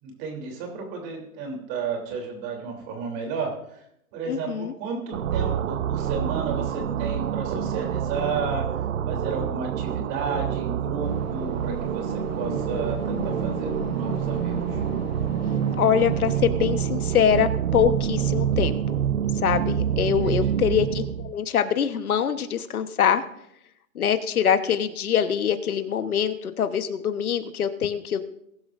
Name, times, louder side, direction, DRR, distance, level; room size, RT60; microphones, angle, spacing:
voice 1, 0.0-3.8 4.1-8.7 9.1-14.8 20.2-20.5, right 4 dB, 30° right, 2 dB, 3.3 m, -33 dB
voice 2, 4.3-4.7 15.8-18.8 19.4-23.2 23.9-28.2, left 8 dB, 80° left, 10 dB, 1.3 m, -24 dB
sound 1, 5.1-21.3, right 9 dB, 65° right, 0.9 m, -27 dB
sound 2, 11.0-16.4, left 10 dB, 45° left, 0.9 m, -38 dB
21.5 x 12.0 x 2.6 m, 0.77 s
hypercardioid pair, 150°, 43 cm